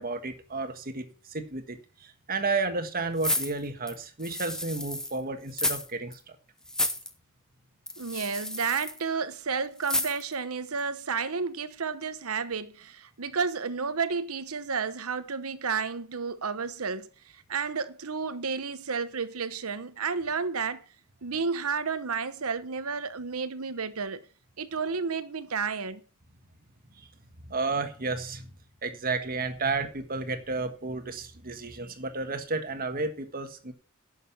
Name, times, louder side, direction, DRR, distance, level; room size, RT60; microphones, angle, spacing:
voice 1, 0.0-6.3 27.0-27.1 27.5-28.5 28.8-33.7, right 3 dB, 45° right, 1.5 m, -32 dB
sound 1, 3.2-5.2 5.5-5.9 6.1-6.2 6.7-7.1 7.9-9.0 9.8-10.3 10.8-10.9, left 1 dB, 5° left, 0.9 m, -31 dB
voice 2, 8.0-20.8 21.2-24.2 24.6-26.0, right 5 dB, 90° right, 1.0 m, -31 dB
11.0 x 6.6 x 5.7 m
head